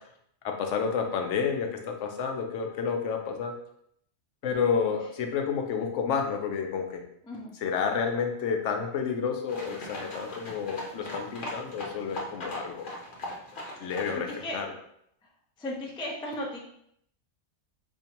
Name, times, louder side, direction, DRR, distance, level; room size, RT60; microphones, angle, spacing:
voice 1, 0.4-3.5 4.4-7.0 7.6-12.9 13.8-14.7, left 6 dB, 75° left, 3 dB, 0.9 m, -30 dB
sound 1, 9.5-14.5, left 1 dB, 45° left, 0.9 m, -39 dB
voice 2, 13.8-14.6 15.6-16.6, left 1 dB, 10° left, -3 dB, 0.3 m, -36 dB
4.5 x 2.5 x 2.9 m, 0.70 s
omnidirectional pair, 1.3 m